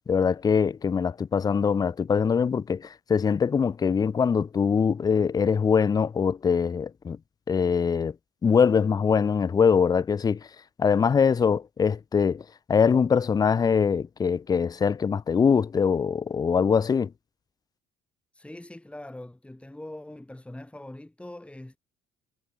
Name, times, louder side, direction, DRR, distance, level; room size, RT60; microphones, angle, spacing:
voice 1, 0.1-7.2 7.5-8.2 8.4-10.5 10.8-17.1, left 6 dB, 25° left, 0.4 m, -23 dB
voice 2, 18.3-21.8, left 1 dB, 5° left, 4.4 m, -42 dB
cardioid pair, 110°, 17 cm